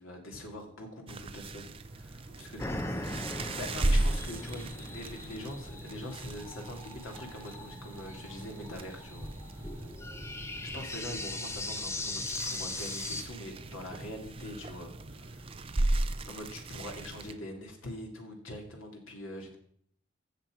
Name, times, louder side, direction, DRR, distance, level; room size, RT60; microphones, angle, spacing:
voice 1, 0.0-2.6 3.3-9.9 10.6-15.5 16.2-19.6, left 1 dB, 90° left, 2 dB, 2.4 m, -44 dB
sound 1, 1.1-17.3, right 2 dB, 25° right, 0.6 m, -36 dB
voice 2, 2.1-3.4 9.8-10.4, equal, 35° left, -1 dB, 3.5 m, -61 dB
sound 2, 2.1-15.9, right 1 dB, 70° right, 4.6 m, -52 dB
sound 3, 2.6-13.2, left 2 dB, 15° left, 0.7 m, -40 dB
15.0 x 7.1 x 4.9 m, 0.65 s
head